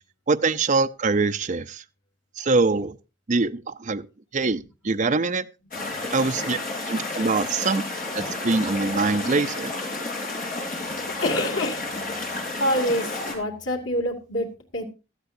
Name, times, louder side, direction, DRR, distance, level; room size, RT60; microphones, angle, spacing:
voice 1, 0.3-1.8 2.4-2.9 3.3-4.1 4.3-5.4 6.1-6.6 6.9-7.8 8.1-9.7, right 3 dB, 40° right, 0.6 m, -23 dB
sound 1, 5.7-13.3, left 2 dB, 45° left, 4.2 m, -31 dB
voice 2, 11.2-11.9 12.6-14.5 14.7-14.8, left 1 dB, 85° left, 2.5 m, -26 dB
16.0 x 12.5 x 2.7 m
head